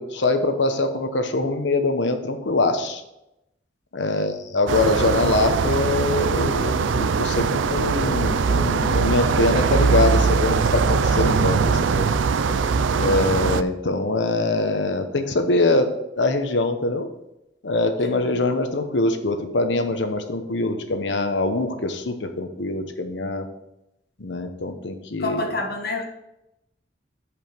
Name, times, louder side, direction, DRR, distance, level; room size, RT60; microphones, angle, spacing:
voice 1, 0.0-3.0 3.9-12.1 13.0-17.1 17.6-23.5 24.2-25.5, left 2 dB, 75° left, 7 dB, 1.0 m, -23 dB
sound 1, 4.7-13.6, right 5 dB, 90° right, 0.4 m, -21 dB
voice 2, 25.2-26.0, left 2 dB, 55° left, 2 dB, 1.5 m, -27 dB
7.9 x 5.1 x 5.1 m, 0.88 s
head